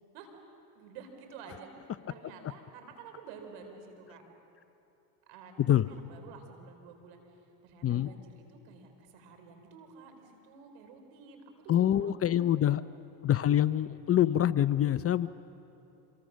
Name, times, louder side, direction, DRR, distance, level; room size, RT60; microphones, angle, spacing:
voice 1, 0.7-1.7 2.1-4.2 5.3-12.7, right 5 dB, 75° right, 5 dB, 4.2 m, -51 dB
voice 2, 11.7-12.8 13.2-15.3, left 11 dB, 30° left, 15 dB, 0.6 m, -25 dB
26.5 x 23.0 x 6.4 m, 2.9 s
supercardioid pair, 80°, 45 cm